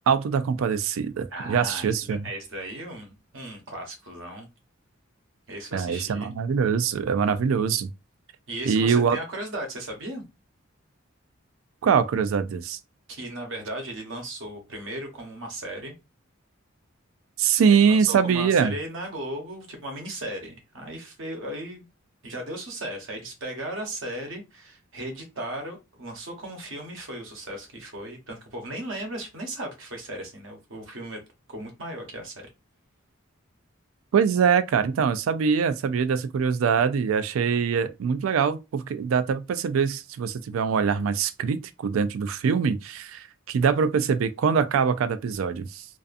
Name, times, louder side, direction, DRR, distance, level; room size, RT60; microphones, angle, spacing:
voice 1, 0.1-2.2 5.7-7.9 8.7-9.2 11.8-12.8 17.4-18.7 34.1-45.8, right 6 dB, 85° right, 0.3 m, -23 dB
voice 2, 1.3-4.5 5.5-6.3 8.5-10.2 13.1-15.9 17.8-21.9 22.2-31.2 31.5-32.5, right 1 dB, 70° right, 0.9 m, -36 dB
2.4 x 2.4 x 2.4 m
head